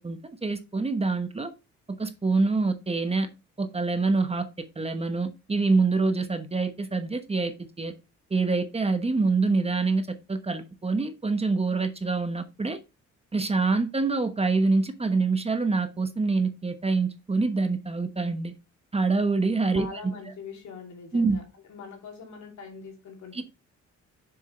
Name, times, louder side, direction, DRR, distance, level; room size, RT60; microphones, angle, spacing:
voice 1, 0.0-1.5 2.0-3.3 3.6-4.4 4.8-7.9 8.3-12.8 13.3-18.5 18.9-19.9 21.1-21.4 23.3-23.4, right 3 dB, 20° right, 1.0 m, -26 dB
voice 2, 19.7-21.4 21.7-23.4, left 4 dB, 70° left, 2.8 m, -42 dB
6.8 x 6.3 x 3.3 m
cardioid pair, 90°, 30 cm